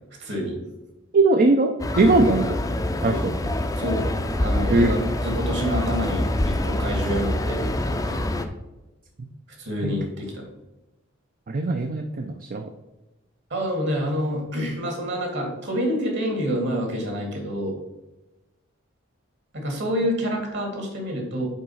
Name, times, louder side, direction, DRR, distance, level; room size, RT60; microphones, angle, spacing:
voice 1, 0.2-0.6 2.3-2.4 3.7-4.1 4.4-8.2 9.6-10.4 13.5-17.8 19.5-21.5, equal, 60° right, 1 dB, 2.2 m, -27 dB
voice 2, 1.1-1.7 2.0-2.5 3.0-3.3 4.7-4.9 9.8-9.9 11.5-12.7, right 2 dB, 45° right, 4 dB, 0.5 m, -20 dB
sound 1, 1.8-8.4, left 1 dB, 15° left, 0.5 m, -25 dB
5.4 x 4.7 x 5.5 m, 1.0 s
head